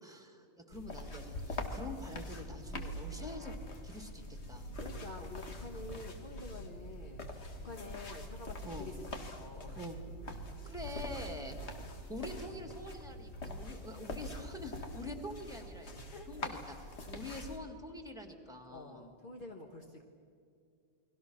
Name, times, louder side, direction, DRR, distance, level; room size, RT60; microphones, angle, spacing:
voice 1, 0.0-3.5 3.8-4.2 4.5-4.7 7.6-7.8 8.6-8.9 9.8-10.0 10.3-15.9 16.3-19.1, left 1 dB, 5° right, 5 dB, 2.3 m, -46 dB
sound 1, 0.7-17.6, left 1 dB, 70° left, 2.1 m, -44 dB
voice 2, 4.7-9.9 10.9-11.1 11.7-12.1 15.9-16.5 18.7-20.0, left 2 dB, 45° left, 2 dB, 1.5 m, -49 dB
29.5 x 21.5 x 6.4 m, 2.4 s
omnidirectional pair, 1.2 m